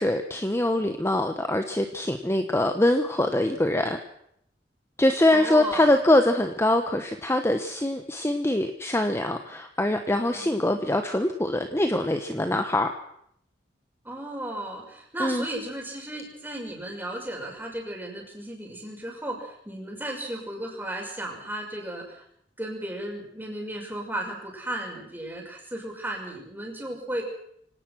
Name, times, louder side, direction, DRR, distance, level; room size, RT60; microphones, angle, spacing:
voice 1, 0.0-4.0 5.0-12.9 15.2-15.5, left 1 dB, 15° left, 7 dB, 1.1 m, -23 dB
voice 2, 5.3-5.9 9.9-10.5 14.0-22.2 22.6-27.2, right 1 dB, 10° right, 0 dB, 6.3 m, -35 dB
25.0 x 18.0 x 6.2 m, 0.71 s
head